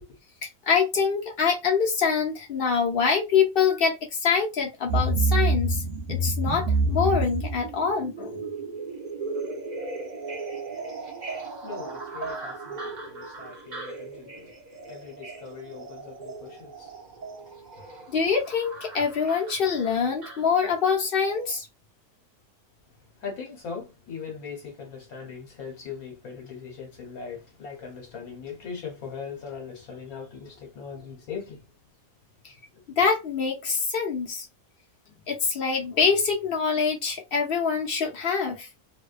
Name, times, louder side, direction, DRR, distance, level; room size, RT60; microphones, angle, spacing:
voice 1, 0.4-5.8 6.1-8.4 18.1-21.7 32.9-34.5 35.3-38.7, left 6 dB, 55° left, 0.6 m, -25 dB
sound 1, 4.9-21.0 21.3-21.4, right 2 dB, 45° right, 0.6 m, -31 dB
voice 2, 11.6-14.5 14.9-16.7 23.2-31.6, left 6 dB, 70° left, 1.2 m, -40 dB
2.7 x 2.1 x 2.4 m
omnidirectional pair, 1.7 m